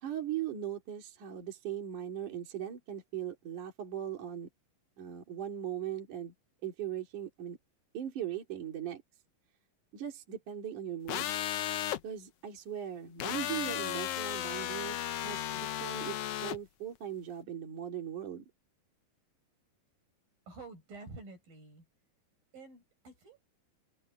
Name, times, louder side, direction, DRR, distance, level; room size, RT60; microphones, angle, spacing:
voice 1, 0.0-4.5 5.0-6.3 6.6-7.6 7.9-9.0 9.9-11.4 12.0-15.0 15.2-16.2 16.4-18.4, right 10 dB, 60° right, 4.6 m, -39 dB
sound 1, 11.1-12.0 13.2-16.6, left 12 dB, 80° left, 1.3 m, -35 dB
voice 2, 20.5-21.9 22.5-23.5, right 3 dB, 90° right, 9.9 m, -49 dB
omnidirectional pair, 4.0 m